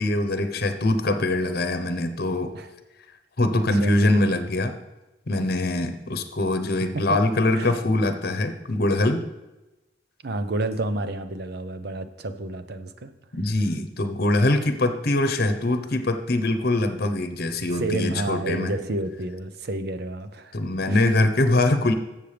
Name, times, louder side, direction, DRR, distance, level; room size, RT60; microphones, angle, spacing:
voice 1, 0.0-2.5 3.4-4.7 5.3-9.2 13.3-18.8 20.5-21.9, left 2 dB, 60° left, 8 dB, 1.0 m, -23 dB
voice 2, 10.2-13.1 17.8-20.5 20.9-21.0, right 2 dB, 60° right, 10 dB, 0.7 m, -30 dB
13.0 x 7.3 x 3.4 m, 1.0 s
head